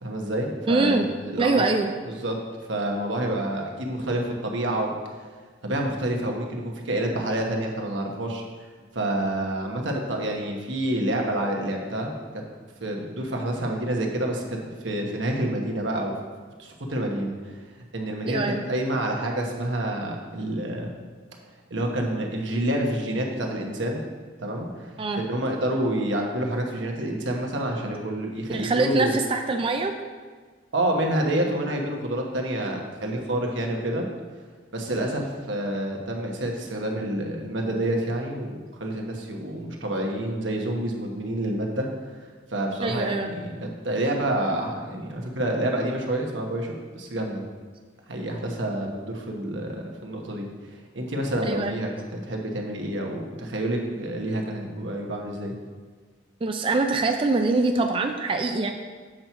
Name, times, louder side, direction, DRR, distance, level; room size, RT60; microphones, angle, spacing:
voice 1, 0.0-1.6 2.0-2.4 2.7-4.9 5.6-8.4 8.9-12.4 12.8-16.1 16.6-17.3 17.9-20.9 21.7-24.0 24.4-29.1 30.7-34.1 34.7-41.9 42.5-47.4 48.1-50.5 50.9-55.5, right 1 dB, 80° right, 1 dB, 1.2 m, -28 dB
voice 2, 0.7-1.1 1.4-1.9 18.3-18.6 25.0-25.2 28.5-29.9 42.8-43.3 51.4-51.8 56.4-58.7, right 3 dB, 30° right, 4 dB, 0.4 m, -24 dB
7.5 x 4.5 x 5.7 m, 1.5 s
head